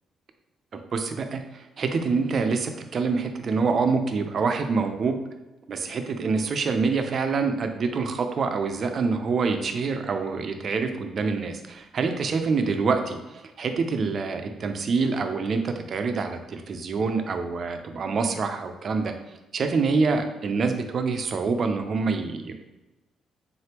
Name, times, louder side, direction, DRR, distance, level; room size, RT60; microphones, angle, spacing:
voice 1, 0.9-5.2 5.7-19.1 19.5-22.5, right 4 dB, 50° right, 6 dB, 0.5 m, -26 dB
3.9 x 3.3 x 2.9 m, 1.1 s
cardioid pair, 90°, 0 cm